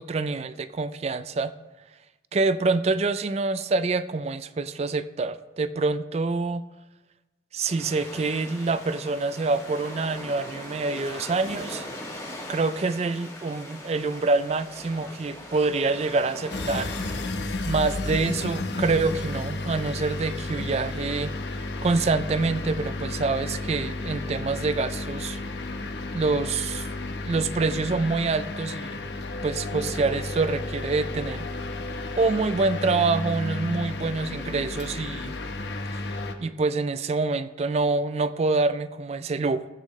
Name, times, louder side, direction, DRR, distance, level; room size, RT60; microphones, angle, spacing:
voice 1, 0.0-1.5 2.3-6.6 7.5-11.8 12.5-16.9 17.6-21.3 21.8-25.4 26.1-26.9 27.3-29.0 29.4-31.5 32.2-35.4 36.0-39.7, right 3 dB, 35° right, 13 dB, 0.4 m, -26 dB
sound 1, 7.6-17.6, left 1 dB, 15° left, 1.7 m, -40 dB
sound 2, 16.5-36.3, left 2 dB, 70° left, 0.9 m, -32 dB
16.5 x 8.2 x 3.2 m, 1.1 s
head